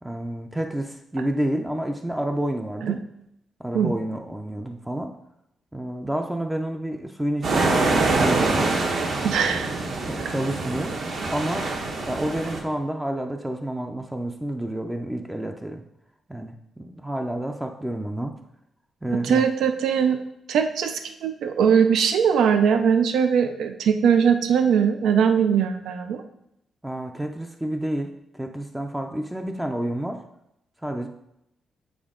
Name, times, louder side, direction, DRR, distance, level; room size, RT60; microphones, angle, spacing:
voice 1, 0.0-3.0 3.6-5.1 5.7-8.8 9.5-9.6 10.0-11.0 11.3-11.7 12.1-15.8 16.3-18.3 19.0-19.5 26.8-30.2 30.8-31.1, right 1 dB, 5° right, 4 dB, 0.4 m, -29 dB
sound 1, 7.4-12.6, right 3 dB, 55° right, 1.0 m, -25 dB
voice 2, 9.2-9.8 19.2-20.2 20.5-26.2, right 7 dB, 90° right, 8 dB, 0.4 m, -21 dB
7.1 x 4.4 x 3.7 m, 0.81 s
cardioid pair, 145°, 0 cm